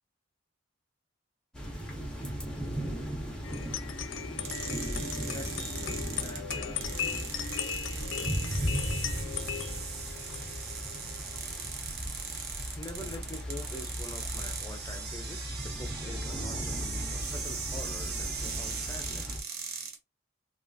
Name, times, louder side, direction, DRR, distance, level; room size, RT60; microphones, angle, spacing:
sound 1, 1.5-19.4, equal, 5° left, 1.0 m, -37 dB
sound 2, 3.4-11.7, left 8 dB, 70° left, 0.5 m, -38 dB
sound 3, 4.4-20.0, right 6 dB, 55° right, 0.7 m, -39 dB
voice 1, 5.1-6.9 12.8-19.4, left 2 dB, 20° left, 0.6 m, -45 dB
3.5 x 2.4 x 2.6 m
head